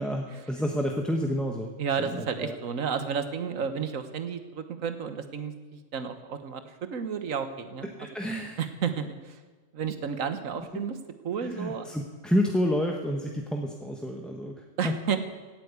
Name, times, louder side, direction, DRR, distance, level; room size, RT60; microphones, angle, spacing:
voice 1, 0.0-1.7 2.0-2.6 8.0-8.6 11.4-14.5 14.8-15.0, equal, ahead, 1 dB, 0.9 m, -29 dB
voice 2, 1.8-8.1 8.6-9.4 9.7-11.0 11.2-11.9 14.8-15.2, right 6 dB, 85° right, 9 dB, 1.5 m, -32 dB
16.5 x 9.4 x 8.2 m, 1.4 s
omnidirectional pair, 1.4 m